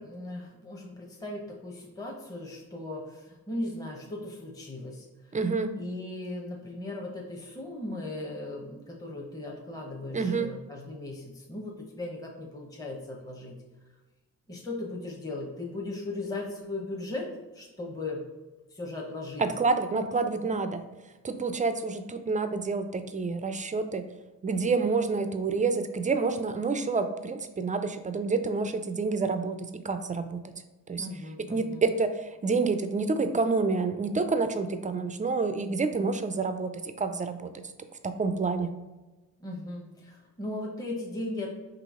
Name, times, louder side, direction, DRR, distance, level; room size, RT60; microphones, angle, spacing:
voice 1, 0.0-5.4 5.8-13.6 14.5-17.3 17.5-18.2 18.7-19.5 31.0-31.8 39.4-41.5, left 2 dB, 10° left, -1 dB, 0.8 m, -37 dB
voice 2, 5.3-5.7 10.1-10.5 19.4-20.9 21.2-24.1 24.4-30.5 30.9-31.1 31.5-37.7 38.0-38.7, right 4 dB, 20° right, 9 dB, 0.3 m, -28 dB
3.9 x 2.8 x 3.6 m, 1.1 s
cardioid pair, 65°, 37 cm